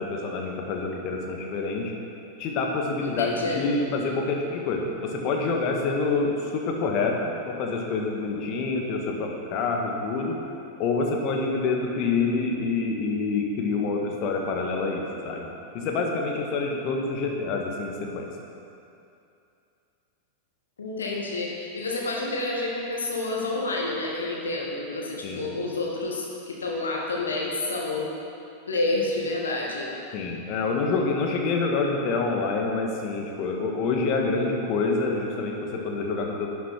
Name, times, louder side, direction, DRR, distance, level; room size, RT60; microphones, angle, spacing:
voice 1, 0.0-1.9 2.4-10.4 10.8-15.4 15.7-18.3 25.2-25.4 30.1-36.5, left 3 dB, 40° left, 1 dB, 1.7 m, -27 dB
voice 2, 3.0-3.6 20.8-28.1 28.7-29.9, left 2 dB, 70° left, -2 dB, 2.0 m, -29 dB
11.0 x 10.0 x 4.5 m, 2.6 s
figure-of-eight pair, 90°, 0 cm